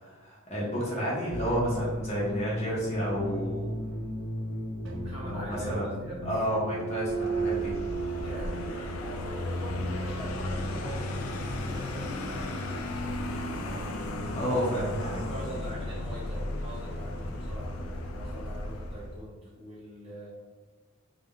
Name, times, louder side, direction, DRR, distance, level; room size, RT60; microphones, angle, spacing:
voice 1, 0.0-3.8 5.2-5.9 6.2-7.8 14.3-15.3, equal, 30° left, -6 dB, 0.7 m, -31 dB
sound 1, 1.3-12.6, right 2 dB, 60° right, 0.4 m, -35 dB
voice 2, 5.0-6.2 8.1-13.2 13.4-14.2 15.3-20.3, right 1 dB, 25° right, -7 dB, 0.8 m, -44 dB
Vehicle, 7.0-19.2, left 1 dB, 85° left, 0.3 m, -35 dB
2.2 x 2.2 x 3.5 m, 1.3 s
head